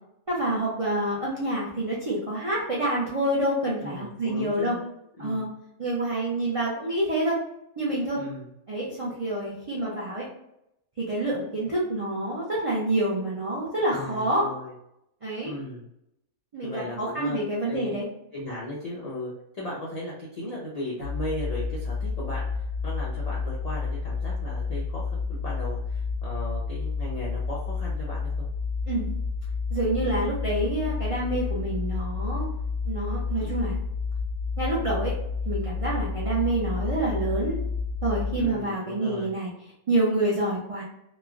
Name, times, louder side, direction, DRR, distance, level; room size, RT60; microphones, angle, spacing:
voice 1, 0.3-4.7 5.2-5.5 5.8-7.4 7.8-8.2 8.7-10.3 11.0-14.5 15.2-15.5 16.5-18.0 28.9-29.1 29.7-32.5 32.8-33.7 34.6-35.1 35.5-37.6 38.0-39.5 39.9-40.8, right 1 dB, 50° right, -7 dB, 0.4 m, -27 dB
voice 2, 3.8-4.8 5.2-5.5 8.1-8.5 13.9-14.7 15.4-15.9 16.6-18.0 18.3-28.5 33.4-33.5 38.4-39.3, left 1 dB, 90° left, -6 dB, 0.3 m, -37 dB
sound 1, 21.0-38.5, left 4 dB, 90° right, 1.1 m, -30 dB
3.0 x 2.2 x 2.3 m, 0.80 s
omnidirectional pair, 1.5 m